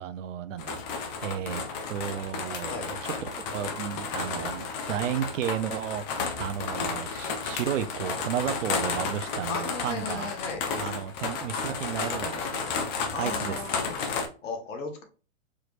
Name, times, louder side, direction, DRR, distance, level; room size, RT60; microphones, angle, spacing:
voice 1, 0.0-1.6 1.9-10.3 10.8-12.7 13.2-13.7 14.0-14.2, right 9 dB, 75° right, 0.7 m, -33 dB
sound 1, 0.6-14.3, left 5 dB, 35° left, 0.8 m, -32 dB
voice 2, 9.5-10.9 13.1-14.0 14.4-15.0, left 4 dB, 70° left, 1.6 m, -36 dB
4.9 x 3.1 x 2.5 m
hypercardioid pair, 140°, 38 cm